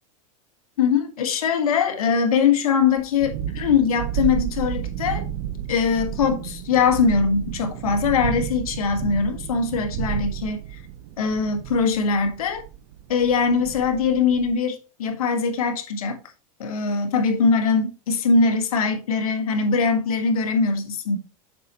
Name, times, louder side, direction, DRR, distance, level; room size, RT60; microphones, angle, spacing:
voice 1, 0.8-5.2 5.7-10.6 11.2-12.6 13.1-16.2 16.6-21.2, left 5 dB, 90° left, 1.4 m, -22 dB
Thunderstorm, 3.0-14.5, right 11 dB, 70° right, 0.7 m, -32 dB
7.5 x 5.6 x 2.9 m
supercardioid pair, 115°, 18 cm